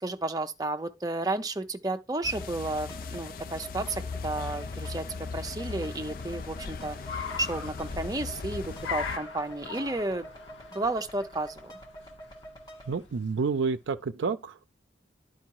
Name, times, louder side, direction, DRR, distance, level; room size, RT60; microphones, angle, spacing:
voice 1, 0.0-5.1 5.3-10.3 10.7-11.7, right 2 dB, 20° right, 0.5 m, -32 dB
sound 1, 2.2-9.2, left 4 dB, 50° left, 0.4 m, -38 dB
sound 2, 2.3-12.9, right 1 dB, 20° left, 1.6 m, -47 dB
Car, 3.9-13.8, left 6 dB, 85° left, 1.5 m, -43 dB
voice 2, 12.9-14.7, right 5 dB, 85° right, 0.4 m, -29 dB
11.0 x 4.6 x 4.6 m
head